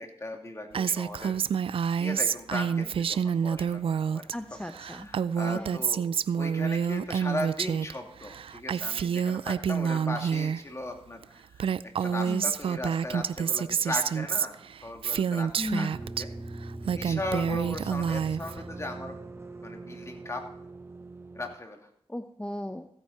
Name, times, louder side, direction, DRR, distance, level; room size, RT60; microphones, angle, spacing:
voice 1, 0.0-1.3 2.0-3.8 4.1-4.3 4.8-14.5 14.8-15.9 16.2-16.3 16.8-19.2 19.6-20.5 21.3-21.9, left 2 dB, 30° left, 3 dB, 2.5 m, -38 dB
Female speech woman speaking, 0.7-4.3 4.6-7.9 8.2-10.6 11.2-11.3 11.5-16.2 16.7-18.6, right 7 dB, 65° right, 0.3 m, -28 dB
voice 2, 4.3-5.1 5.5-5.8 12.2-12.5 15.6-15.9 22.1-22.9, left 1 dB, 10° left, 7 dB, 0.8 m, -35 dB
sound 1, 15.9-21.5, right 2 dB, 25° right, 1.1 m, -42 dB
15.5 x 9.0 x 4.2 m, 0.68 s
cardioid pair, 55°, 10 cm